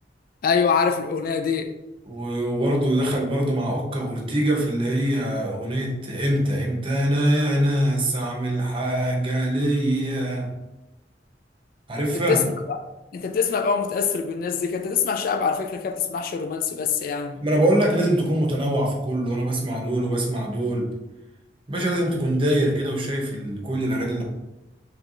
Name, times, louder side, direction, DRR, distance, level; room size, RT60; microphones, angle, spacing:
voice 1, 0.4-1.7 12.1-12.8 13.1-17.4, left 6 dB, 55° left, 0.3 m, -24 dB
voice 2, 2.0-10.5 11.9-12.4 17.4-20.9 21.7-24.2, right 1 dB, 30° right, 0.8 m, -23 dB
4.5 x 3.2 x 2.5 m
head